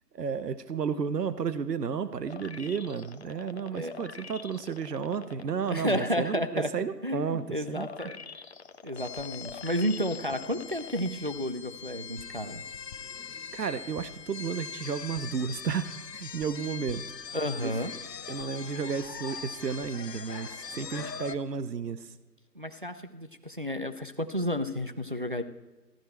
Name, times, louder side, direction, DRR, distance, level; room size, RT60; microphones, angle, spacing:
voice 1, 0.1-7.9 13.5-17.0 17.6-17.7 18.3-22.1, right 6 dB, 75° right, 13 dB, 0.8 m, -32 dB
sound 1, 2.3-5.7 6.2-11.3 11.7-11.8, left 5 dB, 45° left, 0.5 m, -46 dB
voice 2, 5.6-6.7 7.0-8.2 8.8-12.6 17.3-17.9 20.7-21.1 22.6-25.4, equal, 35° right, 9 dB, 0.4 m, -31 dB
sound 2, 9.0-21.4, left 6 dB, 80° left, 0.9 m, -42 dB
14.0 x 11.0 x 4.4 m, 1.2 s
figure-of-eight pair, 145°, 48 cm